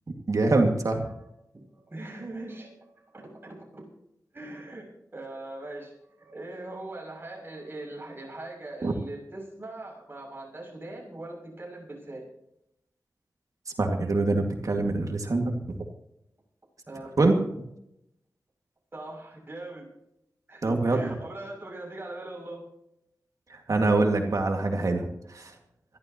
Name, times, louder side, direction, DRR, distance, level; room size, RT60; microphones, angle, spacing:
voice 1, 0.3-1.0 8.8-8.9 13.8-15.8 17.2-17.6 20.6-21.1 23.5-25.5, right 2 dB, 60° right, 3 dB, 2.0 m, -25 dB
voice 2, 1.5-3.8 4.3-4.9 5.1-12.2 16.9-17.1 18.9-19.8 20.5-22.7, right 2 dB, 35° right, -1 dB, 6.9 m, -41 dB
26.5 x 12.0 x 3.0 m, 0.80 s
wide cardioid pair, 85°, 6 cm